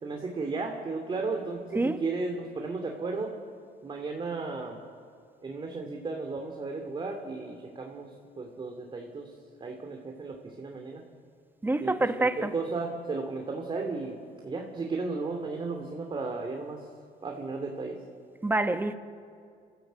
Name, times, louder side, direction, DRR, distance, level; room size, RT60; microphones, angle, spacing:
voice 1, 0.0-3.3 3.8-4.8 5.4-8.1 8.4-9.3 9.6-11.0 11.8-11.9 12.2-14.2 14.4-16.9 17.2-18.0, right 3 dB, 30° right, 2.6 m, -34 dB
voice 2, 11.6-12.5 18.4-18.9, right 2 dB, 10° right, 1.2 m, -26 dB
29.0 x 14.0 x 8.1 m
cardioid pair, 110°, 17 cm